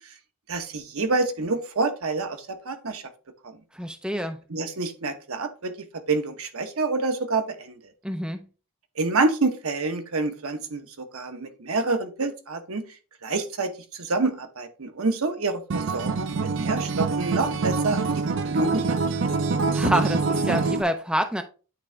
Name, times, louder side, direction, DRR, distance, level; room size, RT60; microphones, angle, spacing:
voice 1, 0.5-2.4 2.7-3.0 4.5-5.7 6.1-7.8 9.0-10.8 11.1-12.8 13.2-13.7 14.0-19.0, right 3 dB, 75° right, 0.9 m, -27 dB
voice 2, 3.7-4.4 8.0-8.4 19.7-21.4, equal, 5° right, 0.5 m, -26 dB
Acoustic guitar, 15.7-20.8, right 4 dB, 55° right, 0.5 m, -25 dB
9.0 x 3.7 x 3.3 m
head